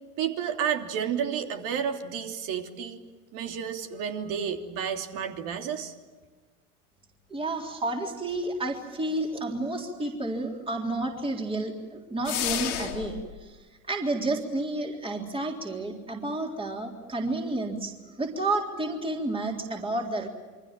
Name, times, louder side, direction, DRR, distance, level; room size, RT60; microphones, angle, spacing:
voice 1, 0.2-3.0 3.3-5.9, right 8 dB, 45° right, 4 dB, 3.2 m, -31 dB
voice 2, 7.3-13.5 13.9-20.3, right 2 dB, 10° right, 1 dB, 3.6 m, -31 dB
sound 1, 12.2-13.3, left 11 dB, 70° left, 3.1 m, -31 dB
28.0 x 24.0 x 7.5 m, 1.4 s
hypercardioid pair, 90°, 45 cm